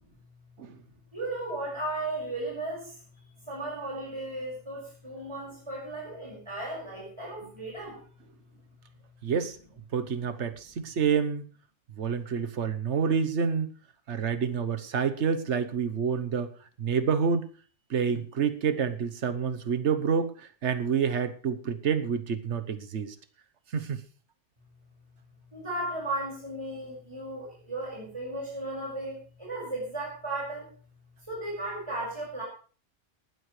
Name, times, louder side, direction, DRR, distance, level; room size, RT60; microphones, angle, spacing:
voice 1, 1.1-2.9 3.5-7.9 25.5-30.7 31.3-32.4, right 2 dB, 25° right, -4 dB, 5.7 m, -35 dB
voice 2, 9.2-9.6 9.9-11.4 12.0-13.7 14.1-16.5 16.8-17.5 17.9-20.3 20.6-23.1 23.7-24.0, right 6 dB, 75° right, 10 dB, 1.3 m, -28 dB
18.5 x 12.5 x 3.3 m, 0.39 s
omnidirectional pair, 1.2 m